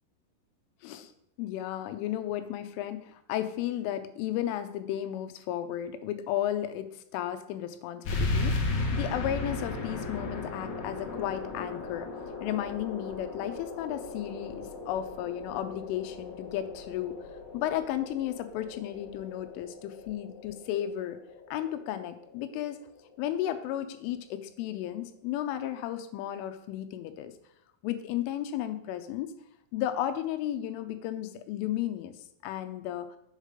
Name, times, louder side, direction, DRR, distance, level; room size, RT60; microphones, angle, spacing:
voice 1, 1.4-8.6 8.9-12.1 12.4-17.2 17.5-21.2 21.5-22.8 23.2-27.3 27.8-29.3 29.7-32.1 32.4-33.1, left 11 dB, 85° left, 9 dB, 3.2 m, -34 dB
sound 1, 8.0-23.1, left 3 dB, 65° left, 2.2 m, -36 dB
7.3 x 6.5 x 5.1 m, 0.81 s
omnidirectional pair, 5.7 m